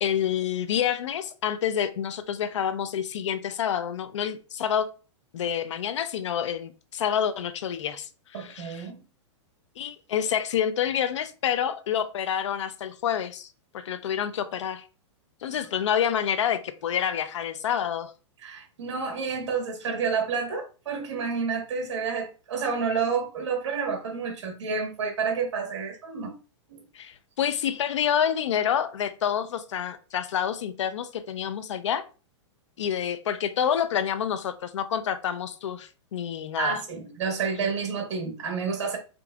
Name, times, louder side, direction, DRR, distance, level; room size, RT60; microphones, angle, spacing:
voice 1, 0.0-4.9 5.3-8.8 9.8-13.5 13.7-14.9 15.4-18.1 26.9-32.0 32.8-36.8, left 9 dB, 70° left, 0.5 m, -28 dB
voice 2, 8.3-9.0 15.5-15.7 18.4-26.3 26.7-26.8 36.6-39.0, right 5 dB, 65° right, 1.5 m, -29 dB
5.2 x 2.9 x 2.3 m
supercardioid pair, 180°, 16 cm